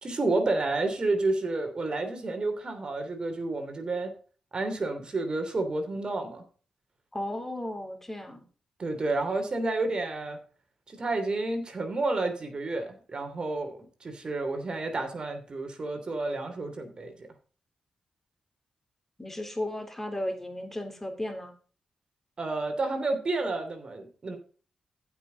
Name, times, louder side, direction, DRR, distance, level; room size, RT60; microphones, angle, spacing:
voice 1, 0.0-4.1 4.5-6.4 8.8-10.4 10.9-17.3 22.4-24.4, right 2 dB, 45° right, 6 dB, 3.0 m, -30 dB
voice 2, 7.1-8.4 19.2-21.5, left 1 dB, 15° left, 4 dB, 3.2 m, -35 dB
15.0 x 6.2 x 4.0 m, 0.39 s
supercardioid pair, 45°, 2 cm